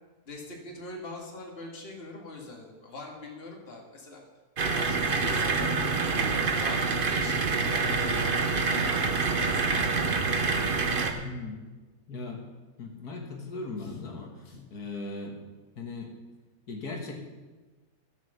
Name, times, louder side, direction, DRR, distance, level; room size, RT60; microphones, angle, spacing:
voice 1, 0.3-4.2 4.7-6.8 7.1-10.3 13.8-14.0 14.4-14.6, left 2 dB, 40° left, 0 dB, 2.3 m, -43 dB
sound 1, 4.6-11.1, right 4 dB, 40° right, 1.0 m, -26 dB
voice 2, 11.1-11.7 12.1-12.5 12.8-14.3 14.7-15.4 15.8-16.1 16.7-17.1, left 3 dB, 80° left, 1 dB, 2.1 m, -38 dB
13.0 x 7.8 x 6.7 m, 1.3 s
omnidirectional pair, 1.6 m